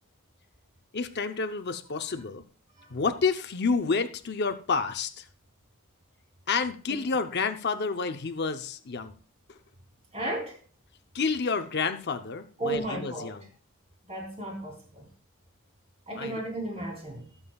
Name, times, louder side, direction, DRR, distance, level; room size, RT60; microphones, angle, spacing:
voice 1, 0.9-2.4 2.9-5.3 6.5-9.1 11.1-13.4 16.2-16.4, left 4 dB, 50° left, 0.7 m, -29 dB
voice 2, 10.1-10.6 12.6-13.4 14.1-15.1 16.1-17.3, right 1 dB, 30° right, 3.1 m, -34 dB
19.5 x 7.1 x 2.3 m
head